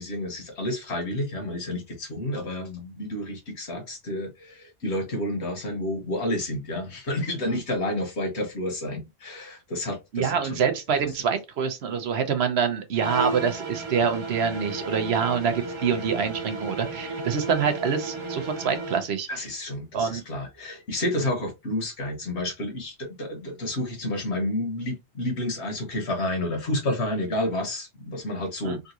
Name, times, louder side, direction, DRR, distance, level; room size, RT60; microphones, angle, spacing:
voice 1, 0.0-10.6 19.3-28.9, left 1 dB, 70° left, 1.5 m, -30 dB
voice 2, 10.1-19.5 19.9-20.2 28.6-28.8, right 6 dB, 70° right, 1.0 m, -26 dB
sound 1, 12.9-19.1, right 3 dB, 35° right, 0.5 m, -34 dB
3.8 x 2.4 x 2.7 m
omnidirectional pair, 1.2 m